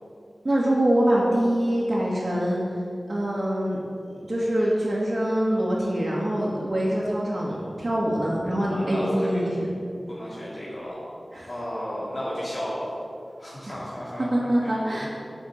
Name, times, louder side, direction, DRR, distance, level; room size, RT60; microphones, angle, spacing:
voice 1, 0.4-2.6 3.1-3.8 4.3-9.7 11.3-11.5 14.3-15.0, right 1 dB, 45° right, -8 dB, 2.3 m, -24 dB
voice 2, 8.7-9.3 9.7-11.0 11.4-13.0 13.4-14.7 15.0-15.1, equal, 60° left, -9 dB, 3.0 m, -33 dB
8.5 x 8.2 x 7.4 m, 2.5 s
wide cardioid pair, 80°, 0 cm